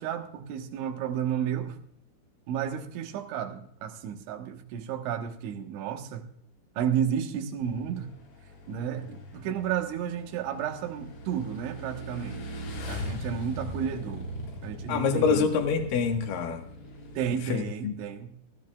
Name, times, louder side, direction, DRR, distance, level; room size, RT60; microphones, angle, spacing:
voice 1, 0.0-1.8 2.5-6.3 6.8-8.1 8.7-12.4 12.9-14.3 14.6-15.5 17.2-18.4, right 9 dB, 75° right, 4 dB, 3.6 m, -32 dB
Motorcycle / Engine, 7.6-17.4, equal, 90° left, 6.8 m, -40 dB
voice 2, 14.9-16.6 17.5-17.9, left 5 dB, 60° left, 4 dB, 2.5 m, -26 dB
18.5 x 15.0 x 2.4 m, 0.65 s
omnidirectional pair, 5.6 m